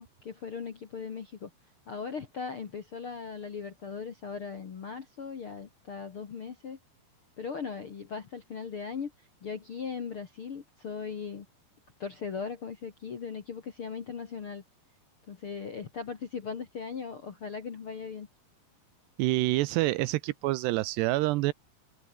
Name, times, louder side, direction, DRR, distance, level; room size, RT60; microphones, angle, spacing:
voice 1, 0.0-1.5 1.9-6.8 7.4-9.1 9.4-11.4 12.0-14.6 15.3-18.3, left 6 dB, 55° left, 1.5 m, -38 dB
voice 2, 19.2-21.5, right 19 dB, 80° right, 2.6 m, -27 dB
omnidirectional pair, 5.2 m